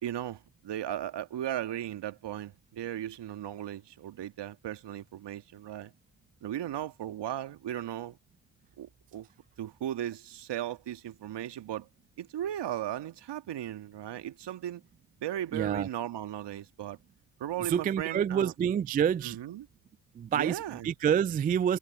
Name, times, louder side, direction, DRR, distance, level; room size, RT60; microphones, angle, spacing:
voice 1, 0.0-5.9 6.4-8.2 8.8-9.3 9.6-11.9 12.2-14.8 15.2-17.0 17.4-18.5 19.2-19.7 20.3-20.9, right 11 dB, 60° right, 2.0 m, -36 dB
voice 2, 15.5-15.9 17.6-19.4 20.1-21.8, right 8 dB, 20° right, 0.3 m, -28 dB
hypercardioid pair, 45°, 47 cm